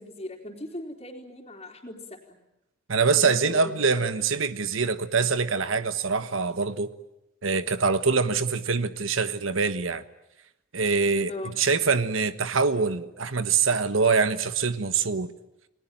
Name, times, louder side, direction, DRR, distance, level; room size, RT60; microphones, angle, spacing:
voice 1, 0.0-2.4 3.2-3.8 4.1-4.2 11.3-11.6, left 1 dB, 30° left, 3.7 m, -38 dB
voice 2, 2.9-6.9 7.4-10.0 10.7-11.3 11.6-15.3, right 5 dB, 80° right, 1.3 m, -24 dB
30.0 x 20.0 x 9.1 m
head